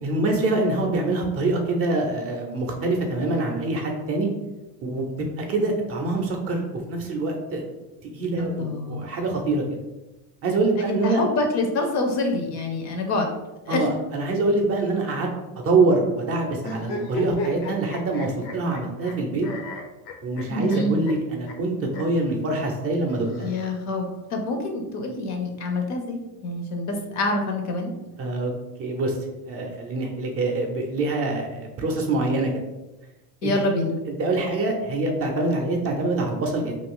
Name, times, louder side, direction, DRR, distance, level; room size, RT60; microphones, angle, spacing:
voice 1, 0.0-4.3 4.8-7.7 8.1-9.6 10.4-11.2 13.7-15.3 15.6-19.5 20.2-23.5 28.2-28.5 28.8-29.1 29.4-32.5 33.4-33.5 34.2-36.8, right 2 dB, 35° right, 2 dB, 0.5 m, -25 dB
voice 2, 8.4-9.1 10.8-13.3 13.7-13.9 20.5-21.0 23.4-27.9 33.4-33.9, left 2 dB, 40° left, 3 dB, 0.5 m, -26 dB
sound 1, 16.6-19.1 19.4-20.8 21.1-21.2 21.5-21.6 21.9-22.0 23.1-24.1, left 2 dB, 85° left, 0.7 m, -34 dB
2.4 x 2.3 x 3.7 m, 1.0 s
cardioid pair, 130°, 43 cm